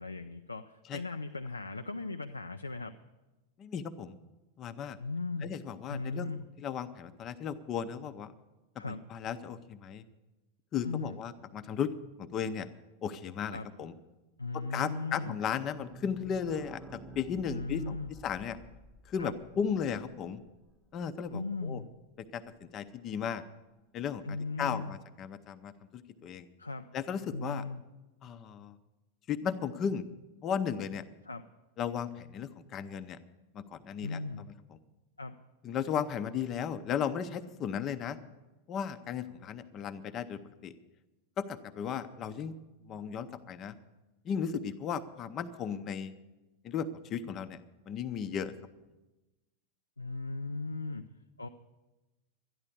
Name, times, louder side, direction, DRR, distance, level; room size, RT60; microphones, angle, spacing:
voice 1, 0.0-2.9 5.0-5.5 5.9-6.5 8.8-9.0 10.8-11.2 13.5-13.7 14.4-15.4 17.5-18.1 19.2-19.3 21.3-21.9 24.2-25.0 26.6-26.9 27.3-27.8 31.3-31.4 34.0-34.5 35.2-35.4 50.0-51.1 51.4-51.5, left 3 dB, 80° left, 7 dB, 0.4 m, -37 dB
voice 2, 3.6-4.1 4.6-5.0 5.4-6.3 6.6-8.3 8.9-10.0 10.7-11.9 12.2-12.7 13.0-13.9 14.5-18.0 18.2-18.6 19.1-20.4 20.9-21.8 22.3-23.4 23.9-26.5 26.9-27.6 28.2-28.8 29.3-30.1 30.4-31.0 31.8-33.2 33.5-34.8 35.6-38.2 38.7-40.7 41.4-42.5 42.9-43.7 44.2-46.1 46.6-47.6 47.9-48.5, left 7 dB, 30° left, 11 dB, 0.7 m, -35 dB
sound 1, 15.2-20.7 21.0-21.1 21.3-21.4 21.7-21.8, right 2 dB, 10° right, 1.0 m, -52 dB
12.5 x 10.5 x 7.1 m, 1.1 s
figure-of-eight pair, 90°, 0 cm